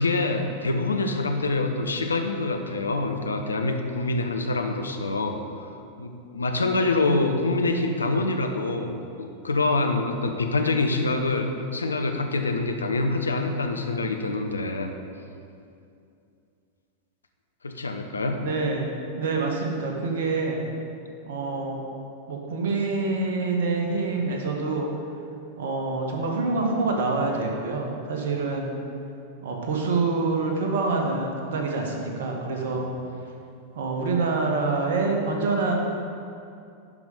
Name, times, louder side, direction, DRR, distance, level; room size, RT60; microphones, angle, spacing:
voice 1, 0.0-5.4 6.0-14.9 17.6-18.4 32.7-32.9, left 2 dB, 75° left, 5 dB, 0.7 m, -25 dB
voice 2, 18.4-18.9 19.1-20.6 21.2-21.8 22.3-24.9 25.6-28.7 29.4-32.8 33.7-35.7, right 3 dB, 60° right, 1 dB, 1.4 m, -26 dB
11.5 x 5.2 x 5.1 m, 2.5 s
figure-of-eight pair, 90°, 0 cm